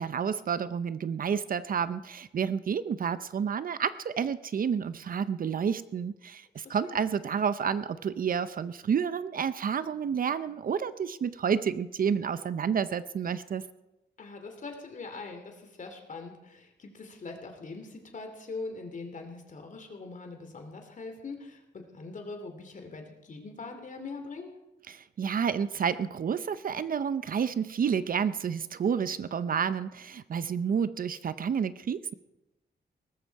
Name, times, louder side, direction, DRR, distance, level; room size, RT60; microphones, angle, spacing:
voice 1, 0.0-13.6 24.9-32.1, right 7 dB, 50° right, 14 dB, 0.6 m, -30 dB
voice 2, 6.6-7.0 14.2-24.5, left 3 dB, 45° left, 5 dB, 2.8 m, -42 dB
18.5 x 14.0 x 4.7 m, 0.96 s
wide cardioid pair, 140°, 18 cm